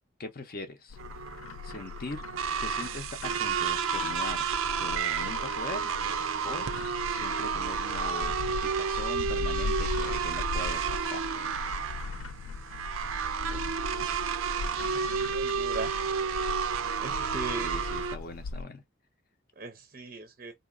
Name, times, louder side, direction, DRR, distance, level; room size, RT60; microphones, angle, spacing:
voice 1, 0.2-1.0 1.6-2.2 2.6-5.9 6.4-6.7 7.1-8.3 8.6-11.3 17.1-18.8, left 2 dB, 45° left, 0.6 m, -41 dB
Bird, 0.9-18.6, left 4 dB, 90° left, 0.4 m, -39 dB
sound 1, 1.0-18.2, right 6 dB, 90° right, 0.5 m, -31 dB
sound 2, 3.7-4.2 4.8-5.5 6.1-6.7 7.4-8.0 8.7-9.1 9.7-10.3 10.8-11.3, left 2 dB, 15° left, 0.8 m, -49 dB
voice 2, 15.0-15.9 17.0-17.7 19.6-20.5, right 3 dB, 40° right, 0.5 m, -38 dB
3.8 x 2.8 x 2.4 m
head